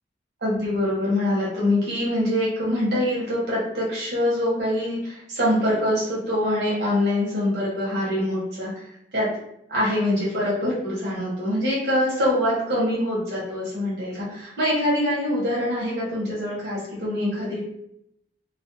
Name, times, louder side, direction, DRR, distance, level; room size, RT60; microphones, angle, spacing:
voice 1, 0.4-8.8 9.1-9.3 9.7-17.7, left 1 dB, 70° right, -6 dB, 0.8 m, -24 dB
2.4 x 2.1 x 2.6 m, 0.76 s
head